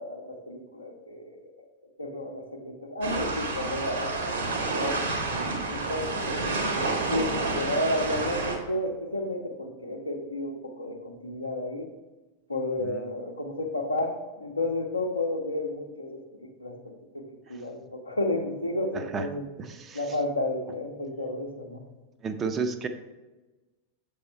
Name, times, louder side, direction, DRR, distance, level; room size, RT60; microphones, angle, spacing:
voice 1, 0.0-1.5 2.0-4.4 4.8-5.0 5.7-6.2 7.1-11.9 12.5-19.4 19.9-21.8, left 1 dB, 80° left, 2 dB, 0.8 m, -32 dB
sound 1, 3.0-8.6, right 3 dB, 65° right, 1.2 m, -29 dB
voice 2, 18.9-19.3 19.6-20.0 22.2-22.9, right 5 dB, 25° right, 8 dB, 0.5 m, -32 dB
6.8 x 3.5 x 4.4 m, 1.2 s
figure-of-eight pair, 90°, 0 cm